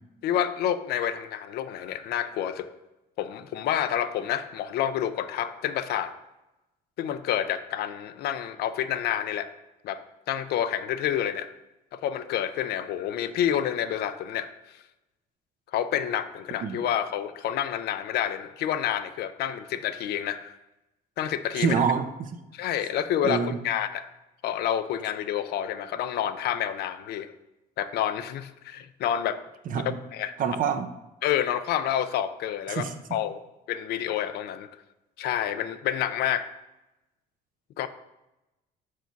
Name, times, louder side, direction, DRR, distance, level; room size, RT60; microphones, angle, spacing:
voice 1, 0.2-2.7 3.2-6.1 7.0-9.5 9.8-11.5 11.9-14.8 15.7-20.5 21.2-21.8 22.5-24.1 24.4-27.3 27.8-29.4 30.1-30.3 31.2-33.4 33.7-34.7 35.2-36.5 37.8-37.9, left 10 dB, 75° left, 11 dB, 0.5 m, -29 dB
voice 2, 21.5-22.3 23.2-23.6 29.7-30.0 30.4-30.9 32.7-32.9, right 6 dB, 55° right, 8 dB, 0.7 m, -26 dB
6.7 x 4.8 x 4.5 m, 0.97 s
cardioid pair, 110°, 17 cm